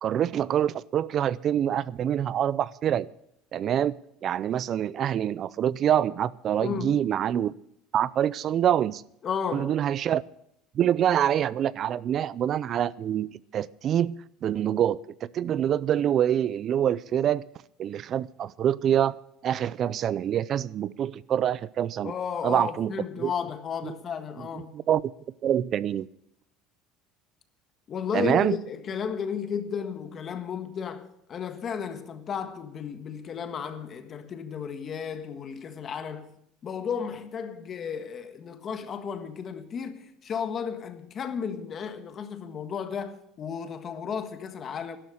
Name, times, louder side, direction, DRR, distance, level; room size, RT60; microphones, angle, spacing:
voice 1, 0.0-3.1 3.5-7.5 7.9-9.0 9.5-10.2 10.7-17.4 17.8-19.2 19.4-22.1 22.4-22.9 23.2-23.3 23.8-23.9 24.9-25.0 25.4-26.1 28.1-28.6, right 10 dB, 45° right, 0.5 m, -26 dB
voice 2, 6.6-7.1 9.2-9.7 22.0-24.7 27.9-36.4 36.6-45.0, left 7 dB, 35° left, 1.5 m, -33 dB
12.5 x 12.0 x 6.4 m
supercardioid pair, 125°, 0 cm